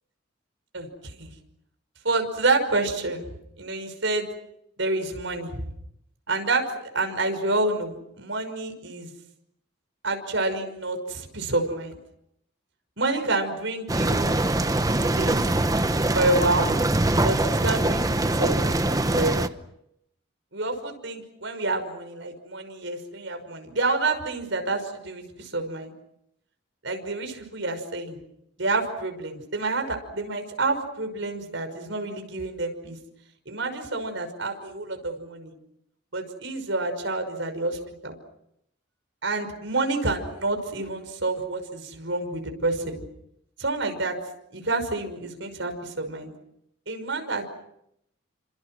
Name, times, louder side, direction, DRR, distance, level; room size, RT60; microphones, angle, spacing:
voice 1, 0.7-1.3 2.0-3.3 3.6-4.3 4.8-5.7 6.3-9.1 10.0-12.0 13.0-14.3 15.2-15.4 16.1-16.8 17.2-19.5 20.5-25.9 26.8-28.2 28.6-33.0 33.5-35.5 36.1-38.2 39.2-43.0 43.6-44.1 44.5-46.3 46.9-47.4, right 2 dB, 70° right, 6 dB, 5.8 m, -28 dB
sound 1, 13.9-19.5, right 2 dB, 20° right, 0.9 m, -23 dB
30.0 x 26.5 x 6.3 m, 0.78 s
head